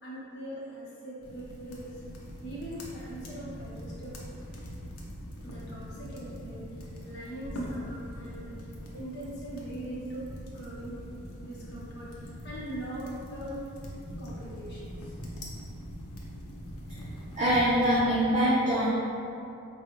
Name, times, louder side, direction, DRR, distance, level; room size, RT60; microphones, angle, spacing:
voice 1, 0.0-2.0 2.4-4.4 5.4-6.7 7.0-10.3 10.5-13.6 14.2-15.2, right 1 dB, 50° left, -7 dB, 0.9 m, -41 dB
sound 1, 1.2-18.0, equal, 80° left, 0.6 m, -42 dB
voice 2, 17.4-18.9, equal, 30° right, -10 dB, 0.5 m, -24 dB
4.6 x 2.3 x 3.0 m, 2.6 s
head